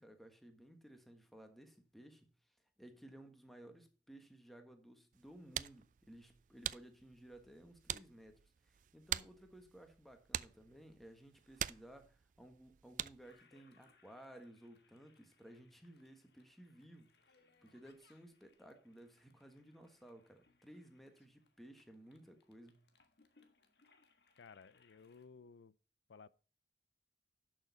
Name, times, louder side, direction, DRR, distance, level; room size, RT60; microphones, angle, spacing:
voice 1, 0.0-2.3 2.8-17.1 17.6-22.9, right 1 dB, ahead, 1.4 m, -58 dB
sound 1, 5.1-13.4, right 11 dB, 45° right, 0.3 m, -46 dB
Toilet flush, 13.2-25.3, left 4 dB, 65° left, 1.5 m, -73 dB
voice 2, 24.4-25.7 26.1-26.3, left 5 dB, 85° left, 0.5 m, -57 dB
11.5 x 6.4 x 4.0 m
head